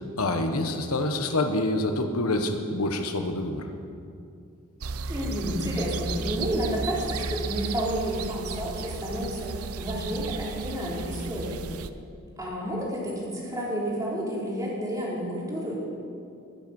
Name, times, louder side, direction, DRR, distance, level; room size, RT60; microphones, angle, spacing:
voice 1, 0.2-3.7, left 2 dB, 90° left, 5 dB, 1.3 m, -26 dB
sound 1, 4.8-11.9, right 4 dB, 90° right, 0.7 m, -34 dB
voice 2, 5.1-11.6 12.4-15.8, equal, 15° right, -5 dB, 3.7 m, -30 dB
20.5 x 7.9 x 7.1 m, 2.5 s
head